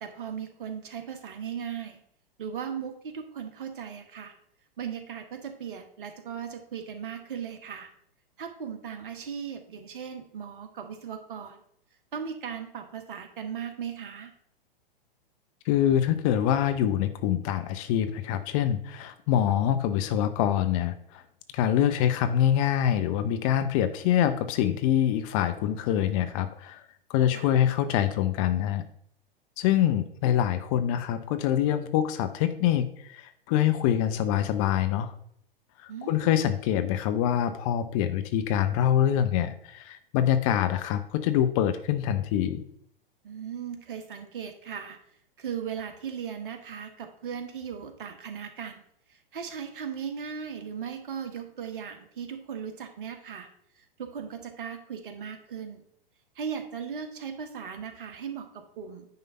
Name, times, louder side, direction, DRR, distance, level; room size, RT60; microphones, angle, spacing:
voice 1, 0.0-2.0 2.4-4.3 4.8-7.9 8.4-11.6 12.1-14.3 27.3-27.5 35.9-36.4 43.2-45.0 45.4-48.8 49.1-53.5 53.8-55.8 56.3-59.1, right 7 dB, 60° right, 7 dB, 1.5 m, -37 dB
voice 2, 15.7-21.2 21.5-26.8 27.1-28.8 29.6-35.1 35.8-42.6, left 10 dB, 35° left, 10 dB, 0.7 m, -25 dB
9.4 x 3.6 x 5.4 m, 0.67 s
figure-of-eight pair, 105°, 29 cm